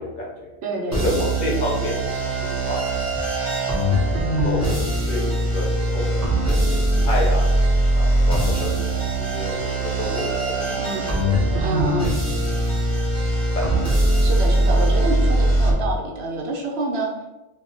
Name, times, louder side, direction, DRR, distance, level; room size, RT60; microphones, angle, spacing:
voice 1, 0.0-0.5 0.9-3.1 3.7-4.8 5.1-7.5 7.9-10.8 11.2-11.5 12.5-12.6 13.5-14.0, left 2 dB, 55° left, -3 dB, 0.6 m, -30 dB
voice 2, 0.6-1.1 10.8-11.0 11.6-12.1 14.2-17.1, right 2 dB, 70° right, -1 dB, 0.8 m, -27 dB
sound 1, 0.9-15.7, right 1 dB, 20° right, 0.5 m, -21 dB
2.2 x 2.1 x 3.7 m, 1.1 s
omnidirectional pair, 1.1 m